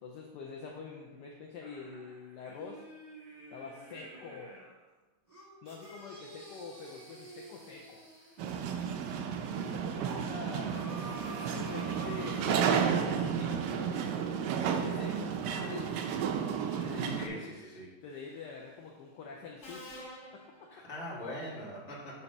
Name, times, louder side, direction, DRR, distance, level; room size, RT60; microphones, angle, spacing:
voice 1, 0.0-2.8 3.5-4.5 5.6-8.0 9.5-12.7 12.9-13.6 14.6-16.1 16.6-17.4 18.0-19.9 20.3-20.4, left 4 dB, 70° left, -1 dB, 1.1 m, -46 dB
sound 1, 1.6-4.8 5.3-8.9 10.7-13.0 13.5-13.6, right 1 dB, 20° right, 1.8 m, -49 dB
sound 2, 8.4-17.3, right 7 dB, 80° right, 0.9 m, -32 dB
voice 2, 17.0-18.0 20.7-22.2, equal, 35° left, -4 dB, 1.5 m, -42 dB
Subway metro underground, 18.1-18.5 19.6-21.3, left 1 dB, 85° left, 2.4 m, -49 dB
7.0 x 2.8 x 5.3 m, 1.2 s
omnidirectional pair, 2.3 m